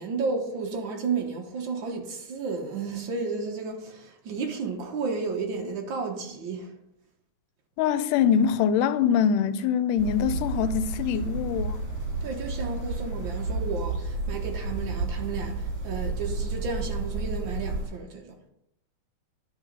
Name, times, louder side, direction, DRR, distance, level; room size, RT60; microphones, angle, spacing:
voice 1, 0.0-6.8 12.2-18.4, right 4 dB, 85° right, 1.0 m, -32 dB
voice 2, 7.8-11.9, left 8 dB, 85° left, 2.1 m, -24 dB
sound 1, 10.0-17.9, right 3 dB, 50° right, 3.6 m, -31 dB
10.5 x 4.6 x 5.2 m
omnidirectional pair, 3.6 m